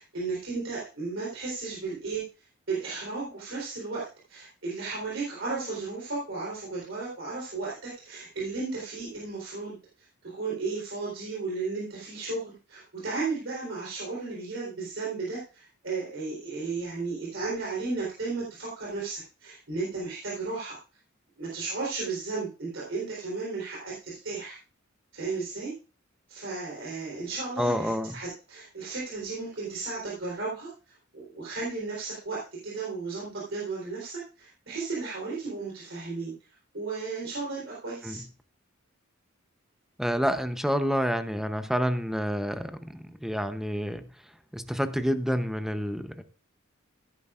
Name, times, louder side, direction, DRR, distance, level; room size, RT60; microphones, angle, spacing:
voice 1, 0.0-2.2 2.7-20.8 21.4-24.6 25.1-25.7 26.3-36.3 36.7-38.2, right 3 dB, 65° right, -6 dB, 3.9 m, -34 dB
voice 2, 27.6-28.2 38.0-38.2 40.0-44.1 44.5-46.2, equal, ahead, 9 dB, 0.8 m, -28 dB
15.0 x 10.5 x 2.5 m, 0.33 s
head